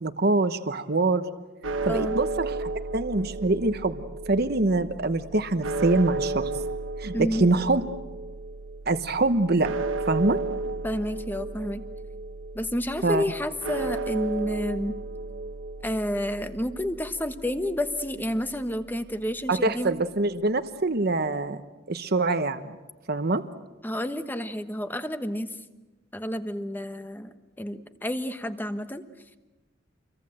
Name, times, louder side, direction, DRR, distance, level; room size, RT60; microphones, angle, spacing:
voice 1, 0.0-1.3 1.8-6.5 7.0-7.8 8.9-9.7 10.1-10.4 13.0-13.2 19.5-21.6 21.9-22.7 23.1-23.4, right 2 dB, 55° right, 9 dB, 1.1 m, -24 dB
sound 1, 1.6-19.9, right 3 dB, 85° right, 1.3 m, -34 dB
voice 2, 1.9-2.2 7.1-7.4 10.8-11.8 12.5-14.9 15.8-19.9 23.8-25.5 26.1-29.0, left 1 dB, 10° left, 9 dB, 1.2 m, -30 dB
27.5 x 23.0 x 7.8 m, 1.1 s
head